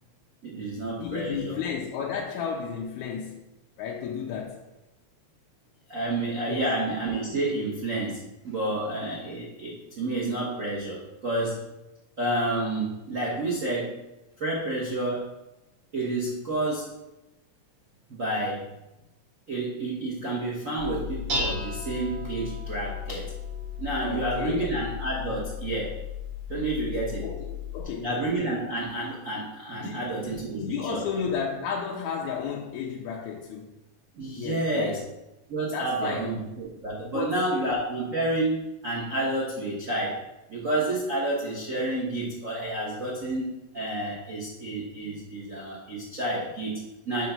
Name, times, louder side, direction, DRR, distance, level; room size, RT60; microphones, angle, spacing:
voice 1, 0.4-1.6 5.9-11.6 12.2-14.0 14.4-15.3 15.9-16.9 18.1-18.7 19.5-23.3 23.8-26.0 26.5-27.3 28.0-31.0 34.1-35.0 35.5-40.2 40.5-47.3, right 2 dB, 75° right, -5 dB, 0.7 m, -30 dB
voice 2, 1.0-3.4 3.8-4.6 6.5-6.7 24.0-24.7 27.2-28.1 29.7-33.7 34.3-35.0 35.7-36.3 37.1-37.5, left 6 dB, 85° left, -1 dB, 2.1 m, -33 dB
Dishes pots and pans, 20.8-27.8, left 5 dB, 55° right, 2.8 m, -34 dB
6.1 x 3.9 x 5.8 m, 0.97 s
omnidirectional pair, 3.4 m